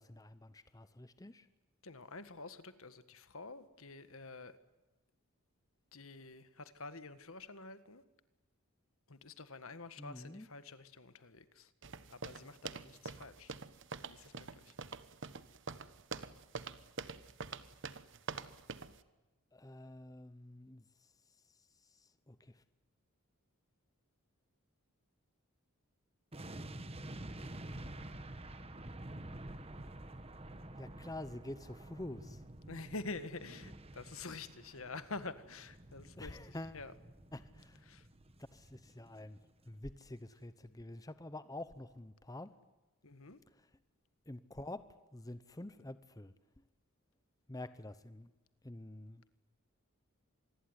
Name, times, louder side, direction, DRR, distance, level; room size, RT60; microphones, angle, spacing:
voice 1, 0.0-1.5 10.0-10.5 19.5-22.6 30.8-32.4 36.2-36.8 37.3-37.9 38.5-39.4 39.6-42.5 43.5-43.7 44.3-46.3 47.5-48.3 48.6-49.4, left 1 dB, 15° left, 13 dB, 0.8 m, -48 dB
voice 2, 1.8-4.6 5.9-8.0 9.1-11.7 12.1-13.5 14.1-14.7 32.7-36.9 37.9-38.1 43.0-43.4, left 3 dB, 70° left, 12 dB, 1.7 m, -48 dB
sound 1, 11.8-19.0, right 4 dB, 55° right, 1.2 m, -45 dB
sound 2, 26.3-39.5 39.7-39.9, right 1 dB, 25° right, 1.5 m, -49 dB
26.5 x 21.0 x 9.7 m, 1.1 s
head